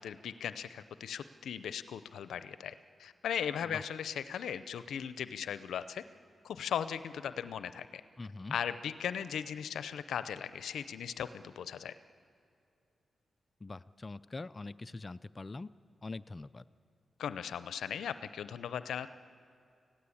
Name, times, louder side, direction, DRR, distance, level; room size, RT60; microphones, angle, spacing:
voice 1, 0.0-2.7 3.0-6.0 6.4-7.9 8.5-11.9 17.2-19.1, left 8 dB, 90° left, 13 dB, 0.6 m, -38 dB
voice 2, 8.2-8.6 13.6-15.7 16.0-16.6, left 3 dB, 35° left, 13 dB, 0.5 m, -43 dB
25.5 x 16.5 x 8.6 m, 2.6 s
cardioid pair, 60°, 0 cm